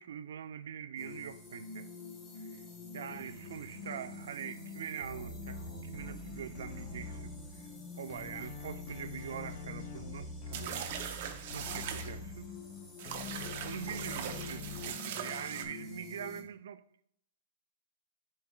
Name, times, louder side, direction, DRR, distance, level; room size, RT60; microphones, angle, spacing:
voice 1, 0.0-1.9 2.4-2.6 2.9-7.7 8.0-11.2 11.5-12.5 13.6-17.0, right 9 dB, 75° right, 0.4 m, -44 dB
sound 1, 1.0-16.4, left 4 dB, 15° left, 1.0 m, -47 dB
sound 2, 5.0-7.8 8.1-12.8 13.0-14.9, left 3 dB, 40° left, 0.8 m, -46 dB
sound 3, 10.5-12.1 13.0-15.6, right 8 dB, 45° right, 0.7 m, -40 dB
10.5 x 4.5 x 2.4 m
supercardioid pair, 175°, 0 cm